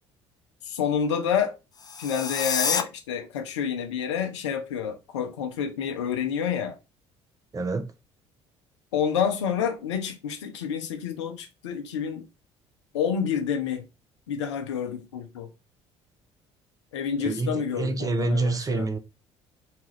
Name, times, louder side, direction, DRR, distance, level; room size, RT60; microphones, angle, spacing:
voice 1, 0.7-1.5 2.0-6.8 8.9-12.3 12.9-13.9 14.3-15.5 16.9-18.9, left 7 dB, 85° left, 0.5 m, -28 dB
sound 1, 1.7-2.8, left 6 dB, 25° left, 0.4 m, -27 dB
voice 2, 7.5-7.9 17.2-19.0, right 3 dB, 25° right, 0.5 m, -27 dB
2.8 x 2.3 x 3.1 m
hypercardioid pair, 60°, 15 cm